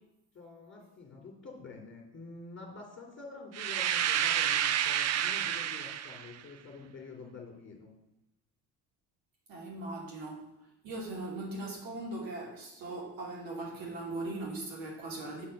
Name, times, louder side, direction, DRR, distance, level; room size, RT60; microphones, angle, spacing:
voice 1, 0.3-7.9, left 3 dB, 30° left, -3 dB, 2.5 m, -48 dB
sound 1, 3.5-6.3, right 10 dB, 35° right, 0.5 m, -29 dB
voice 2, 9.5-15.5, right 2 dB, 65° right, -2 dB, 2.7 m, -39 dB
7.4 x 4.4 x 6.3 m, 0.87 s
hypercardioid pair, 55°, 48 cm